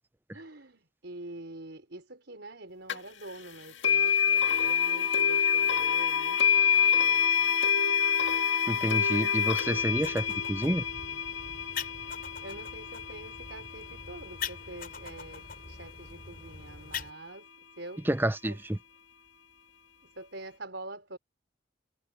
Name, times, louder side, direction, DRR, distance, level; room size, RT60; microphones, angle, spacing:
voice 1, 0.3-7.5 12.4-17.5 17.8-18.1 18.4-18.6 20.1-21.2, right 2 dB, 70° right, 4.6 m, -46 dB
sound 1, 2.9-3.0 3.8-14.8, left 7 dB, 80° left, 1.9 m, -27 dB
voice 2, 8.7-10.8 18.1-18.8, right 1 dB, 10° right, 0.5 m, -29 dB
sound 2, 9.6-17.1, left 6 dB, 50° left, 6.3 m, -43 dB
head